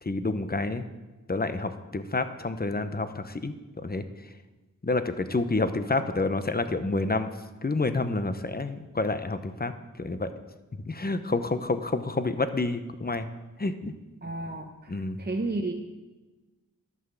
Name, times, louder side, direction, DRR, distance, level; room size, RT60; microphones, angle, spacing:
voice 1, 0.0-0.8 1.3-3.5 3.8-4.0 4.8-7.3 7.6-9.7 10.0-10.3 10.9-13.3 13.6-13.9 14.9-15.2, left 3 dB, 30° left, 10 dB, 0.8 m, -28 dB
voice 2, 14.2-14.9 15.2-15.7, right 2 dB, 30° right, 3 dB, 0.9 m, -31 dB
11.0 x 6.0 x 6.8 m, 1.2 s
wide cardioid pair, 50°, 33 cm